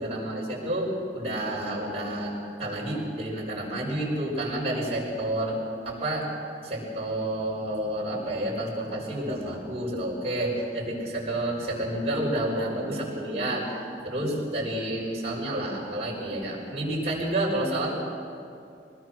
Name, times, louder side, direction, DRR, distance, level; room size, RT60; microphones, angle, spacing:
voice 1, 0.0-2.3 2.6-5.6 5.8-6.3 6.6-17.9, right 1 dB, 35° right, -4 dB, 6.1 m, -29 dB
23.5 x 19.5 x 6.3 m, 2.5 s
head